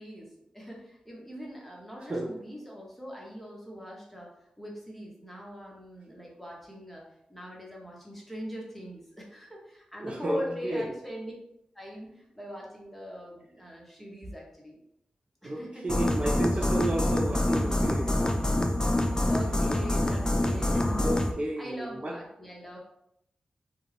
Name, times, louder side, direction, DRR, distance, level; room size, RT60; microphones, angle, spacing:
voice 1, 0.0-11.3 11.7-14.8 15.4-15.9 19.2-21.1 21.4-22.8, equal, 5° left, -3 dB, 1.0 m, -42 dB
voice 2, 10.0-10.9 15.4-18.2 21.0-22.1, right 1 dB, 45° right, -1 dB, 0.5 m, -32 dB
sound 1, 15.9-21.3, left 1 dB, 25° left, 0.4 m, -26 dB
2.3 x 2.3 x 3.3 m, 0.78 s
cardioid pair, 40°, 3 cm